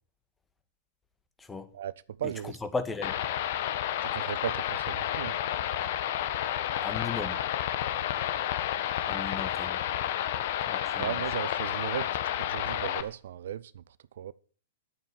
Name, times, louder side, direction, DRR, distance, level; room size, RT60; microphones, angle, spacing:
voice 1, 1.4-1.7 2.2-3.1 6.8-7.4 9.1-9.8 10.7-11.2, left 4 dB, 10° left, 1.8 m, -36 dB
voice 2, 2.2-2.6 4.0-5.4 11.0-12.1 12.5-13.8 14.2-14.3, right 10 dB, 65° right, 0.6 m, -36 dB
sound 1, 3.0-13.0, left 11 dB, 55° left, 1.5 m, -31 dB
11.5 x 9.0 x 8.4 m
hypercardioid pair, 110°, 0 cm